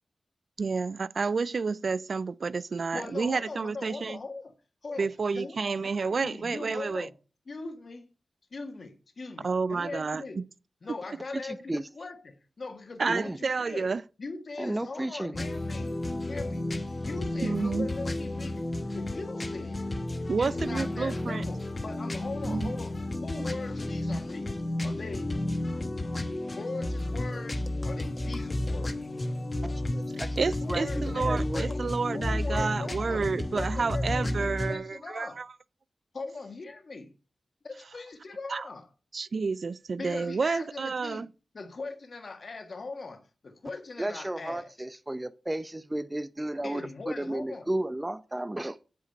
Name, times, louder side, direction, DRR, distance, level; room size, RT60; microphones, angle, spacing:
voice 1, 0.6-4.2 5.0-7.1 9.4-10.4 13.0-14.0 17.4-17.9 20.3-21.4 22.4-22.7 30.4-35.5 38.5-38.7 39.1-41.3, right 4 dB, 65° right, 0.3 m, -30 dB
voice 2, 2.9-4.5 4.8-7.1 7.5-8.0 8.5-10.4 10.8-13.9 14.2-15.9 16.3-16.6 17.0-19.9 20.4-22.9 23.2-25.3 26.6-29.0 30.6-31.8 32.1-35.4 36.1-37.1 37.6-38.9 40.0-41.2 41.5-44.7 46.6-47.7, left 3 dB, 65° left, 1.5 m, -40 dB
voice 3, 11.4-11.8 13.1-13.4 14.6-15.3 29.6-31.7 44.0-48.8, right 1 dB, 20° right, 0.7 m, -33 dB
sound 1, 15.3-34.8, left 1 dB, 40° left, 1.1 m, -32 dB
8.2 x 5.1 x 5.3 m
cardioid pair, 40°, 0 cm